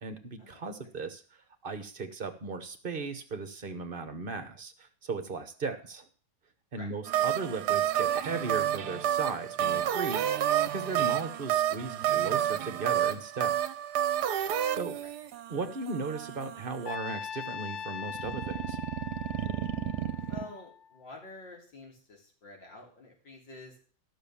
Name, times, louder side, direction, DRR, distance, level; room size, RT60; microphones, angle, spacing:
voice 1, 0.0-1.2 1.6-6.0 6.7-10.2 10.7-13.6 14.4-15.0 15.5-18.8, right 4 dB, 35° right, 8 dB, 1.0 m, -37 dB
sound 1, 7.1-17.0 18.1-20.4, right 11 dB, 70° right, 1.2 m, -30 dB
voice 2, 14.4-15.1 20.3-23.8, left 2 dB, 85° left, -1 dB, 3.9 m, -48 dB
Trumpet, 16.9-21.1, left 7 dB, 60° left, 0.8 m, -41 dB
12.0 x 6.3 x 7.0 m, 0.41 s
omnidirectional pair, 1.9 m